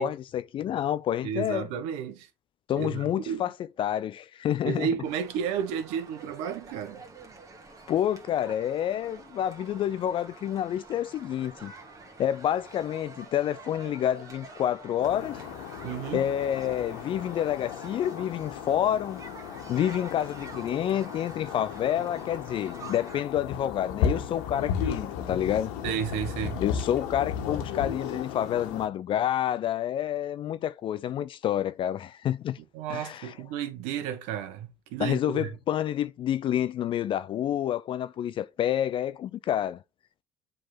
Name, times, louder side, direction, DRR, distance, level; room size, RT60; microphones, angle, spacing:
voice 1, 0.0-1.7 2.7-3.5 3.8-4.9 7.9-11.7 12.2-15.4 16.1-19.2 19.7-25.7 26.6-32.6 32.9-33.3 35.0-39.8, left 10 dB, 45° left, 0.5 m, -28 dB
voice 2, 1.2-2.3 2.8-3.4 4.6-7.0 15.8-16.3 25.8-26.6 32.7-35.5, right 8 dB, 70° right, 1.2 m, -32 dB
sound 1, 5.0-23.2, right 3 dB, 30° right, 2.1 m, -47 dB
sound 2, 15.0-28.9, left 7 dB, 75° left, 1.4 m, -35 dB
7.4 x 3.8 x 4.1 m
hypercardioid pair, 70°, 12 cm